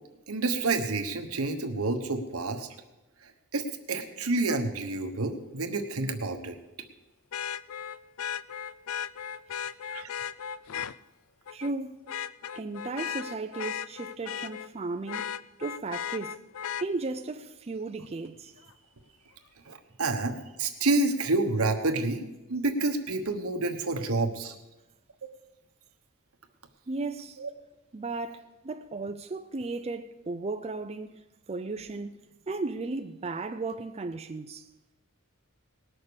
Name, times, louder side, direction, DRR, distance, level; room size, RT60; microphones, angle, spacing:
voice 1, 0.3-2.7 3.5-6.6 9.9-10.1 19.7-24.5 27.4-27.5, right 2 dB, 80° right, 1.2 m, -29 dB
Vehicle horn car horn honking, 4.5-4.6 7.3-10.9 11.5-11.7 12.1-14.7 15.1-16.9 18.7-18.8, left 9 dB, 70° left, 0.4 m, -36 dB
voice 2, 11.5-12.0 12.5-15.3 15.6-16.4 16.8-18.7 26.9-27.4 27.9-31.2 31.5-32.1 32.5-34.7, right 3 dB, 30° right, 0.5 m, -35 dB
19.0 x 6.5 x 6.9 m
head